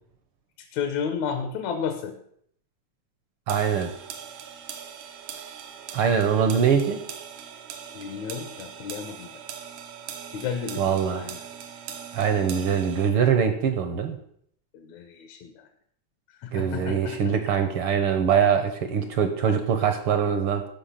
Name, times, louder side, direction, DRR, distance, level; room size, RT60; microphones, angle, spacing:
voice 1, 0.6-2.2 7.9-9.4 10.3-10.9 11.1-11.4 14.7-15.5 16.4-17.6, left 6 dB, 75° left, 7 dB, 2.2 m, -32 dB
voice 2, 3.5-3.9 5.9-7.1 10.8-11.3 12.1-14.2 16.5-20.6, right 7 dB, 65° right, 7 dB, 1.4 m, -23 dB
sound 1, 3.5-13.1, right 8 dB, 90° right, 2.5 m, -41 dB
13.5 x 5.6 x 5.7 m, 0.67 s
omnidirectional pair, 3.3 m